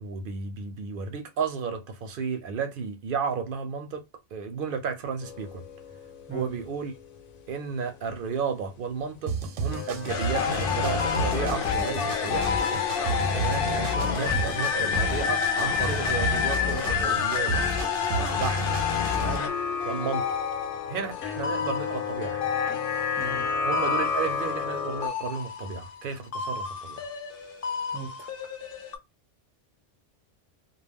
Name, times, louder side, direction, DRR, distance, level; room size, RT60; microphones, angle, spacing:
voice 1, 0.0-4.0 4.3-5.6 6.3-6.9 7.5-12.8 13.3-17.5 18.1-18.8 19.1-19.5 19.8-20.2 20.9-22.5 23.6-27.0, right 6 dB, 60° right, 0.6 m, -33 dB
sound 1, 5.2-7.7 8.0-8.1 9.7-16.2 17.1-25.1, left 5 dB, 85° left, 0.9 m, -34 dB
sound 2, 9.3-19.4, right 5 dB, 85° right, 1.0 m, -34 dB
sound 3, 10.1-23.4 23.7-26.1 26.3-29.0, left 6 dB, 60° left, 0.7 m, -29 dB
voice 2, 23.2-23.6 27.9-28.3, right 3 dB, 15° right, 0.4 m, -38 dB
2.2 x 2.1 x 3.4 m
omnidirectional pair, 1.2 m